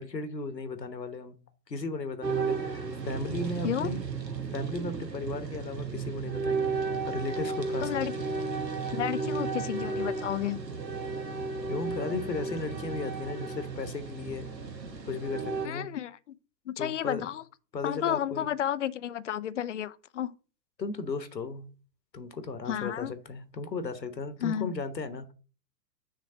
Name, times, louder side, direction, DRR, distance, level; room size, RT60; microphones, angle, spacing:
voice 1, 0.0-1.4 1.7-4.0 4.5-6.8 7.0-8.3 11.7-14.5 15.1-15.9 16.8-17.3 17.7-18.5 20.8-21.7 22.1-25.3, left 3 dB, 80° left, 1.2 m, -36 dB
sound 1, 2.2-15.7, right 4 dB, 80° right, 1.3 m, -33 dB
voice 2, 7.8-8.1 8.9-10.6 15.6-16.2 16.7-17.4 17.8-20.3 22.7-23.1 24.4-24.7, left 10 dB, 50° left, 0.5 m, -31 dB
6.6 x 3.3 x 5.8 m
figure-of-eight pair, 105°, 49 cm